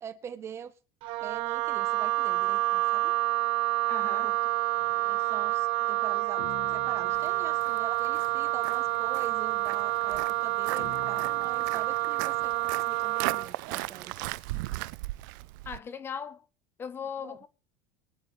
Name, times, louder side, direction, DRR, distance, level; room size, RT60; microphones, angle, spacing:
voice 1, 0.0-0.7 1.2-3.1 4.2-4.4 5.0-6.4 6.7-14.2 17.2-17.4, right 8 dB, 25° right, 0.7 m, -43 dB
Wind instrument woodwind instrument, 1.0-13.5, right 19 dB, 55° right, 1.0 m, -28 dB
voice 2, 3.9-4.3 15.7-16.4 16.8-17.5, left 7 dB, 20° left, 0.7 m, -38 dB
sound 1, 4.8-8.0 9.1-12.4, left 8 dB, 70° left, 1.8 m, -50 dB
Walk footsteps, 7.2-15.8, right 20 dB, 70° right, 0.5 m, -38 dB
23.5 x 9.2 x 3.1 m
cardioid pair, 155°, 11 cm